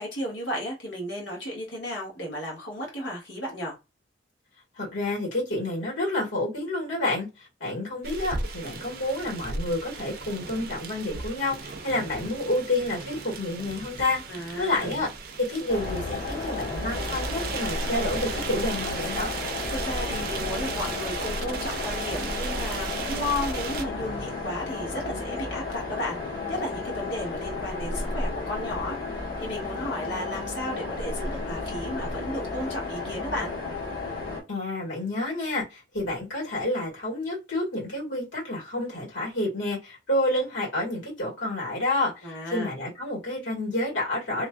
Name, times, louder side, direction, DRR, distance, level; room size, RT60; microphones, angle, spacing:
voice 1, 0.0-3.8 14.3-15.0 19.7-33.5 42.2-42.7, left 1 dB, 70° left, 1.5 m, -34 dB
voice 2, 4.8-14.2 14.6-15.1 15.4-19.3 34.5-44.5, left 1 dB, 90° left, 1.8 m, -29 dB
sound 1, 8.0-23.9, right 4 dB, 55° right, 0.5 m, -36 dB
sound 2, 15.7-34.4, left 3 dB, 50° left, 1.4 m, -33 dB
3.0 x 2.5 x 2.2 m
head